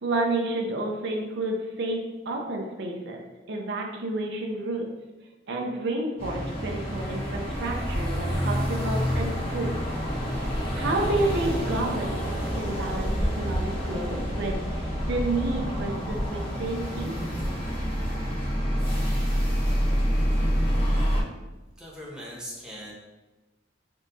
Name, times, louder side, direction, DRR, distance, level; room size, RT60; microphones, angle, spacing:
voice 1, 0.0-3.2 3.5-4.9 5.5-9.8 10.7-17.2, right 2 dB, 65° right, 1 dB, 0.6 m, -30 dB
sound 1, 6.2-21.2, equal, 30° left, 1.1 m, -27 dB
voice 2, 21.8-22.9, equal, 5° right, -6 dB, 1.0 m, -40 dB
4.3 x 3.5 x 2.6 m, 1.2 s
head